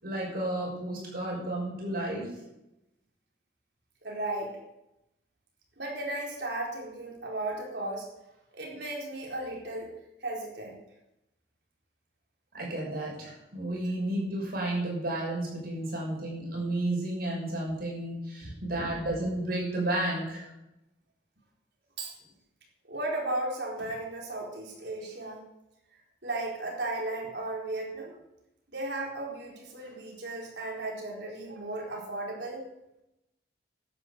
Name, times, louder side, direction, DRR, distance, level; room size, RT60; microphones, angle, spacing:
voice 1, 0.0-2.3 12.5-20.5, right 1 dB, 60° right, -3 dB, 6.3 m, -32 dB
voice 2, 4.0-4.6 5.8-8.1 8.5-9.9 10.2-10.8 18.4-18.5 22.0-22.1 22.9-25.5 26.2-28.1 28.7-32.6, right 2 dB, 75° right, -1 dB, 4.3 m, -35 dB
11.5 x 9.9 x 6.7 m, 0.90 s
head